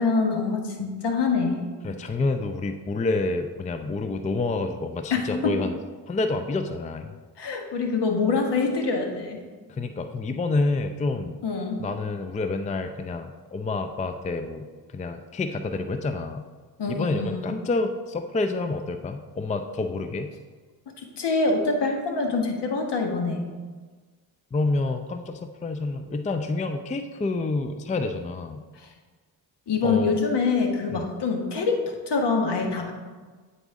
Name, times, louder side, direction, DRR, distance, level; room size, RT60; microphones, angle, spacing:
voice 1, 0.0-1.6 5.1-5.6 7.4-9.4 11.4-11.8 16.8-17.6 20.9-23.5 29.7-31.8 32.1-32.9, left 4 dB, 60° left, 3 dB, 1.3 m, -25 dB
voice 2, 1.8-5.8 6.1-7.1 9.7-11.4 11.8-14.7 14.9-16.4 16.9-20.3 24.5-28.6 29.8-30.2 30.9-31.1, left 3 dB, 15° left, 7 dB, 0.4 m, -28 dB
9.2 x 4.1 x 3.6 m, 1.4 s
supercardioid pair, 45°, 46 cm